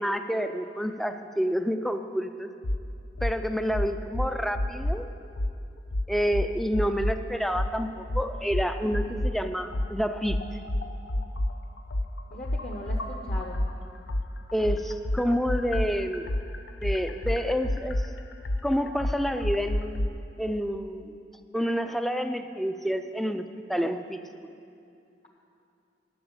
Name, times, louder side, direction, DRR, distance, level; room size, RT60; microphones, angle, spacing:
voice 1, 0.0-2.5 3.2-5.1 6.1-10.4 14.5-16.3 16.8-18.0 18.6-21.2 21.5-24.2, equal, ahead, 8 dB, 0.4 m, -28 dB
sound 1, 2.6-2.8 3.2-3.4 3.7-5.0 5.4-5.5 5.9-7.2 7.5-7.7 8.1-9.4 9.7-13.7 14.1-20.1, left 1 dB, 80° left, 0.8 m, -28 dB
voice 2, 12.3-13.6, left 1 dB, 40° left, 0 dB, 0.9 m, -39 dB
11.0 x 7.0 x 8.7 m, 2.5 s
head